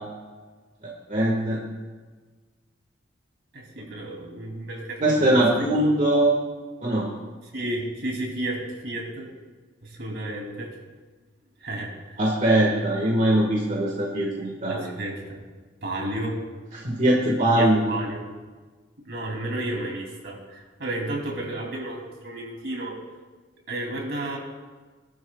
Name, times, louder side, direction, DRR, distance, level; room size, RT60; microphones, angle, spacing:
voice 1, 1.1-1.6 5.0-6.3 6.8-7.1 12.2-14.9 16.7-17.8, right 1 dB, 45° right, -3 dB, 1.7 m, -21 dB
voice 2, 3.5-5.4 5.8-5.9 7.5-9.3 9.8-10.7 11.6-12.2 14.7-15.4 15.8-16.4 17.5-18.3 19.0-23.0 23.7-24.4, right 1 dB, 65° right, -1 dB, 3.0 m, -32 dB
19.0 x 12.0 x 2.4 m, 1.4 s
head